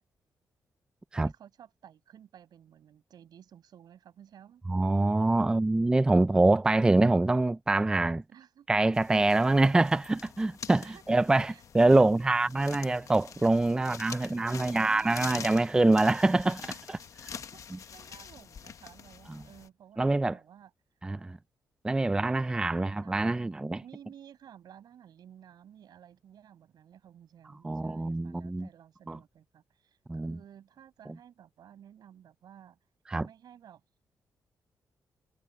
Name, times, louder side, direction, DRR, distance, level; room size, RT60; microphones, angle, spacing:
voice 1, 1.2-4.6 5.1-5.6 8.3-8.7 10.8-12.2 12.5-12.7 13.7-15.6 16.6-16.8 17.2-20.7 22.1-32.8 33.2-33.8, right 9 dB, 75° right, 6.3 m, -54 dB
voice 2, 4.7-8.2 8.7-16.6 16.9-17.0 19.3-19.4 20.0-20.4 21.0-21.4 21.8-23.8 27.6-28.7 29.1-29.2 30.1-30.4 33.1-33.3, right 2 dB, 10° right, 0.4 m, -25 dB
sound 1, 8.9-19.7, left 7 dB, 50° left, 1.0 m, -45 dB
wide cardioid pair, 150°, 7 cm